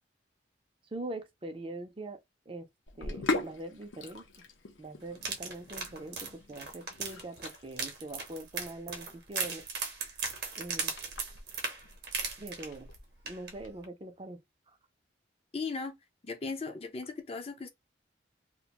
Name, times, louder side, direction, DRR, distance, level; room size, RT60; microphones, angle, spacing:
voice 1, 0.9-2.2 2.5-2.7 3.0-4.2 4.8-9.6 10.6-10.9 12.4-12.9 13.2-14.4, right 2 dB, 30° right, 0.4 m, -42 dB
Sink (filling or washing), 2.9-13.7, left 3 dB, 90° left, 0.6 m, -41 dB
sound 1, 5.1-12.9 13.3-13.5 13.8-13.9, right 5 dB, 55° right, 0.8 m, -37 dB
voice 2, 15.5-16.0 16.2-17.7, left 4 dB, 30° left, 0.4 m, -37 dB
2.4 x 2.2 x 2.8 m
head